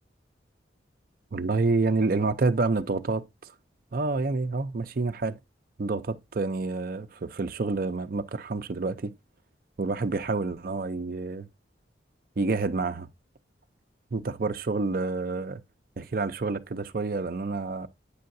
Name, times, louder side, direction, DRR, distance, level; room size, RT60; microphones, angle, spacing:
voice 1, 1.3-3.5 3.9-5.4 5.8-9.1 9.8-11.5 12.4-13.1 14.1-15.6 16.0-17.9, right 3 dB, 50° right, 0.5 m, -28 dB
8.5 x 5.6 x 2.6 m
head